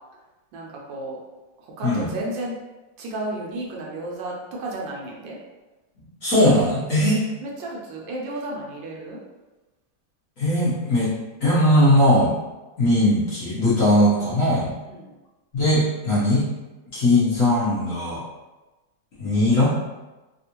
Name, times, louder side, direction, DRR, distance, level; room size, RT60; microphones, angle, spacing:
voice 1, 0.5-1.2 1.6-2.6 3.0-5.4 7.4-9.2 14.5-15.1, right 1 dB, 75° right, -2 dB, 1.3 m, -33 dB
voice 2, 6.2-7.2 10.4-11.1 11.4-12.4 12.8-14.7 15.5-16.4 16.9-18.2 19.2-19.7, left 1 dB, 55° left, -9 dB, 1.0 m, -19 dB
3.5 x 2.4 x 2.8 m, 1.1 s
omnidirectional pair, 2.1 m